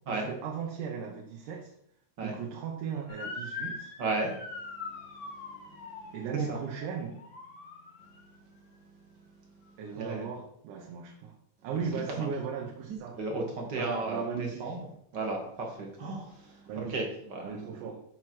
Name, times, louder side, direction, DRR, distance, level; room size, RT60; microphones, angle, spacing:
voice 1, 0.1-1.7 2.2-3.9 6.1-7.2 9.8-11.4 11.6-13.2 13.7-14.7 16.7-17.1 17.4-18.0, right 6 dB, 85° right, 1 dB, 2.5 m, -36 dB
Motor vehicle (road) / Siren, 3.1-8.3, left 4 dB, 85° left, 3.3 m, -42 dB
voice 2, 4.0-4.4 6.3-6.6 9.7-10.3 12.1-12.3 12.9-14.8 15.1-17.5, right 2 dB, 45° right, 1 dB, 1.6 m, -34 dB
7.6 x 6.0 x 4.5 m, 0.70 s
omnidirectional pair, 3.6 m